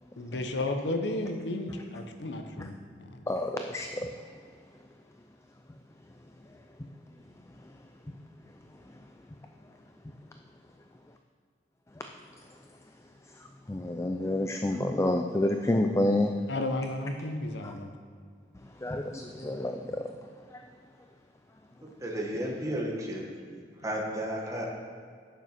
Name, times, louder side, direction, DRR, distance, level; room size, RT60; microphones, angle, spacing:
voice 1, 0.2-3.3 16.5-17.9, left 2 dB, 65° left, 6 dB, 0.8 m, -33 dB
voice 2, 3.3-4.4 5.7-6.9 7.2-8.2 8.4-9.3 9.6-9.7 10.0-10.2 11.9-16.3 16.6-16.7 17.6-17.8 18.5-20.6, left 1 dB, 15° left, 4 dB, 0.4 m, -32 dB
voice 3, 21.8-24.7, equal, 20° right, -1 dB, 1.4 m, -34 dB
9.2 x 6.8 x 5.9 m, 2.2 s
head